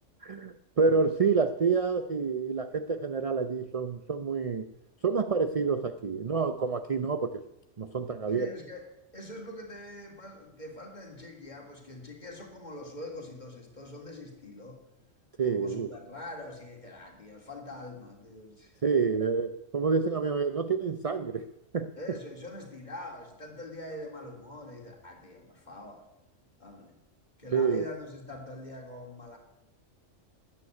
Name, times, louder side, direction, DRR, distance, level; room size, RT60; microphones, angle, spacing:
voice 1, 0.2-4.7 5.0-7.4 7.8-8.5 15.4-15.9 18.8-21.5 21.7-21.9 27.5-27.9, right 5 dB, 40° right, 9 dB, 0.5 m, -28 dB
voice 2, 8.3-8.9 9.1-14.8 15.4-18.7 22.0-26.0 26.6-26.9 27.4-29.4, left 1 dB, 35° left, 1 dB, 3.2 m, -44 dB
13.0 x 9.2 x 9.4 m, 0.89 s
omnidirectional pair, 1.3 m